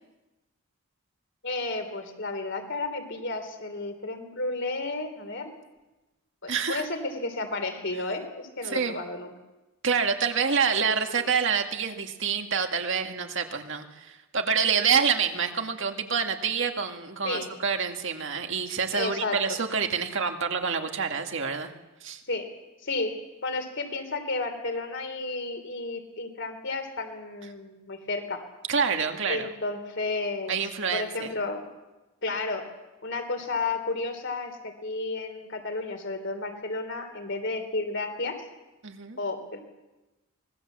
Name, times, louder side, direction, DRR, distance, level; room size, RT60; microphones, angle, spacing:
voice 1, 1.4-5.5 6.4-9.3 11.2-11.3 17.2-17.5 18.9-19.4 22.3-22.5 22.8-23.1 23.4-28.4 29.2-31.7 32.2-32.6 33.0-38.4 39.2-39.6, left 3 dB, 55° left, 7 dB, 3.4 m, -32 dB
voice 2, 6.5-6.9 8.6-9.0 9.8-21.7 22.0-22.2 28.7-29.5 30.5-31.3 38.8-39.2, right 6 dB, 60° right, 4 dB, 2.1 m, -27 dB
25.0 x 20.0 x 7.5 m, 1.1 s
head